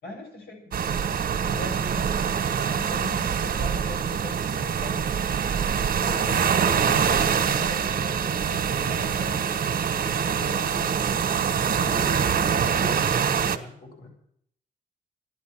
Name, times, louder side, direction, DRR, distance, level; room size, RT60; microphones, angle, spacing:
voice 1, 0.0-0.7 1.5-5.1 6.0-9.4 10.0-10.9, left 2 dB, 80° left, 1 dB, 6.8 m, -40 dB
sound 1, 0.7-13.6, right 7 dB, 60° right, 1.5 m, -24 dB
voice 2, 5.6-6.0 11.6-14.1, left 2 dB, 65° left, -1 dB, 7.8 m, -41 dB
13.5 x 11.0 x 7.6 m, 0.66 s
cardioid pair, 95°, 17 cm